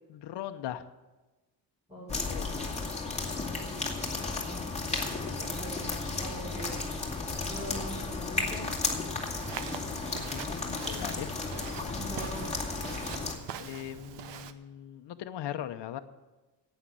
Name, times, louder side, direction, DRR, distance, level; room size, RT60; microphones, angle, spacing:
voice 1, 0.1-0.8 2.1-2.6 6.5-6.8 7.7-7.8 10.2-11.3 13.6-16.0, left 11 dB, 70° left, 8 dB, 0.8 m, -40 dB
voice 2, 1.9-2.3 4.3-5.0 5.4-6.8 7.4-8.7 11.9-12.5, right 1 dB, 15° right, -6 dB, 4.7 m, -42 dB
sound 1, 2.1-13.3, left 3 dB, 15° left, 2.4 m, -34 dB
Walk footsteps, 9.3-14.5, right 8 dB, 75° right, 1.0 m, -43 dB
11.5 x 9.1 x 8.4 m, 1.1 s
cardioid pair, 115°, 42 cm